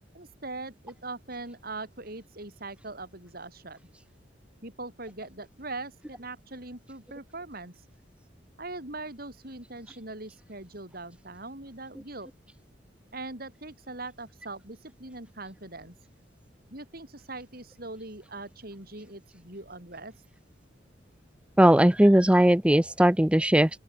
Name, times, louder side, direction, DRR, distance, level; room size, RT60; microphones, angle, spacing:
voice 1, 0.1-3.8 4.6-7.8 8.6-12.3 13.1-16.0 16.7-20.1, right 2 dB, 55° right, 6.3 m, -41 dB
voice 2, 21.6-23.7, right 1 dB, 5° right, 0.5 m, -19 dB
open air
head